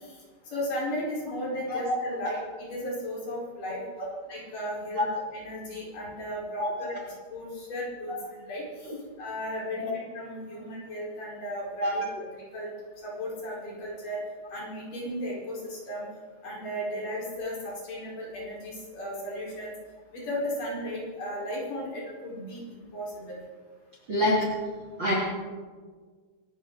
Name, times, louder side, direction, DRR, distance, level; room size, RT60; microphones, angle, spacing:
voice 1, 0.5-2.4 2.7-3.8 4.3-5.0 5.3-6.9 7.3-8.9 9.2-9.9 10.1-12.1 12.5-12.7 13.0-14.2 14.5-16.0 16.4-19.7 20.1-23.4, equal, 45° left, -5 dB, 5.9 m, -35 dB
voice 2, 24.1-24.5 25.0-25.1, left 1 dB, 30° right, -4 dB, 2.8 m, -26 dB
25.5 x 13.5 x 4.0 m, 1.5 s
omnidirectional pair, 5.5 m